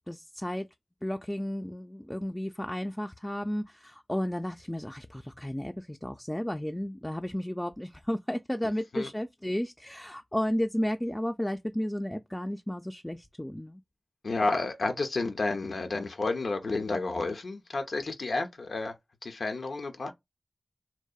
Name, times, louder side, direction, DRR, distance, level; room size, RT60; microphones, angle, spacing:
voice 1, 0.1-0.7 1.0-13.8, equal, 15° left, 0.3 m, -33 dB
voice 2, 14.2-18.9 19.2-20.1, left 3 dB, 85° left, 0.4 m, -31 dB
2.7 x 2.0 x 2.2 m
cardioid pair, 40°, 0 cm